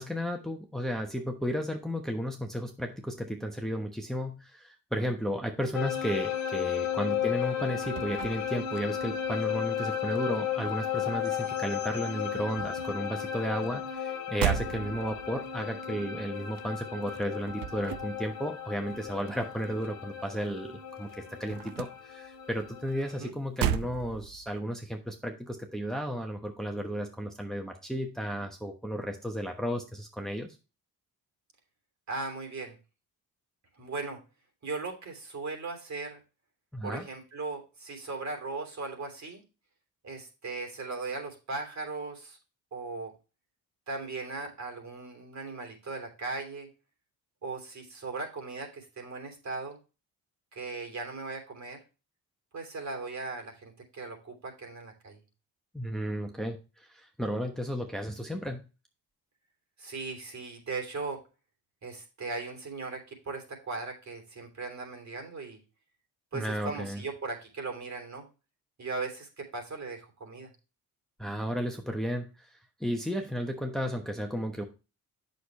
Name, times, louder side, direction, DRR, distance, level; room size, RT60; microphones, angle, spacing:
voice 1, 0.0-30.6 36.7-37.0 55.7-58.6 66.3-67.0 71.2-72.5 72.8-74.6, equal, ahead, 3 dB, 1.1 m, -33 dB
sound 1, 5.7-23.2, left 9 dB, 80° left, 1.3 m, -34 dB
sound 2, 7.5-9.5 9.7-11.7 11.9-20.6 20.9-24.6, right 11 dB, 70° right, 0.7 m, -37 dB
voice 2, 32.1-32.8 33.8-34.2 34.6-36.2 36.8-39.4 40.0-42.4 42.7-43.1 43.9-46.7 47.4-49.8 50.5-51.8 52.5-55.2 59.8-61.2 61.8-65.6 66.3-68.3 68.8-70.5, right 3 dB, 50° right, 3 dB, 3.3 m, -38 dB
8.0 x 6.5 x 3.1 m, 0.31 s
cardioid pair, 85°, 36 cm